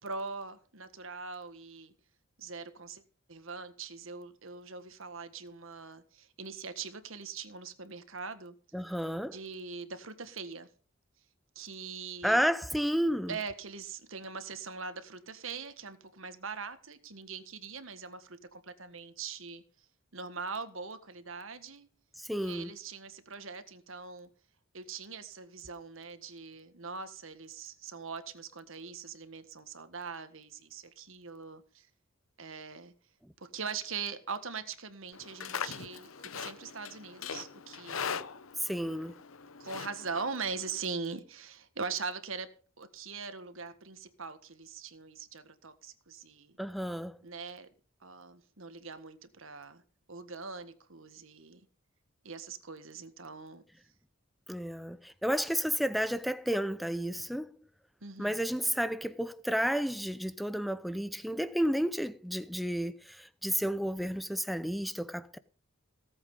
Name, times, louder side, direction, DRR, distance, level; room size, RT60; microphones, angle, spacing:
voice 1, 0.0-1.9 2.4-3.0 3.3-8.5 9.3-10.7 11.5-12.4 13.3-19.6 20.1-21.9 22.4-24.3 24.7-31.9 32.4-32.9 33.4-38.1 39.6-46.6 47.2-47.7 48.0-49.8 50.1-51.6 52.2-53.6 58.0-58.3, right 5 dB, 70° right, 1.7 m, -42 dB
voice 2, 8.7-9.4 12.2-13.4 22.2-22.7 38.6-39.1 46.6-47.2 54.5-57.5 58.2-65.4, equal, ahead, 0.7 m, -31 dB
Livestock farm animals working animals, 35.1-40.8, left 6 dB, 75° left, 0.9 m, -41 dB
18.0 x 8.0 x 5.4 m
head